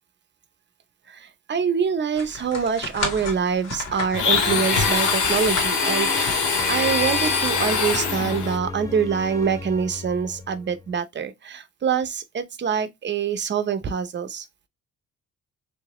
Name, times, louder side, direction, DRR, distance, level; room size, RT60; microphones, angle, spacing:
voice 1, 1.1-14.5, right 6 dB, 35° right, 0.7 m, -25 dB
sound 1, 2.2-8.3, left 3 dB, 60° left, 2.0 m, -33 dB
Domestic sounds home sounds, 4.1-8.6, left 5 dB, 85° left, 1.2 m, -23 dB
sound 2, 5.8-11.0, left 2 dB, 10° left, 0.7 m, -36 dB
3.4 x 2.9 x 3.0 m
cardioid pair, 90°, 30 cm